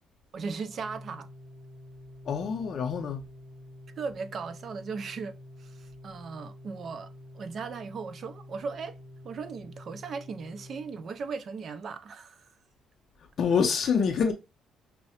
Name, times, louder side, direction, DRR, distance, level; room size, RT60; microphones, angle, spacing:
voice 1, 0.3-1.3 4.0-9.0 9.2-12.5, right 5 dB, 45° right, 0.4 m, -37 dB
Organ, 0.6-11.5, left 1 dB, 25° right, 2.1 m, -48 dB
voice 2, 2.3-3.2 13.4-14.3, left 6 dB, 50° left, 0.5 m, -26 dB
5.5 x 2.0 x 2.8 m
cardioid pair, 130°, 0 cm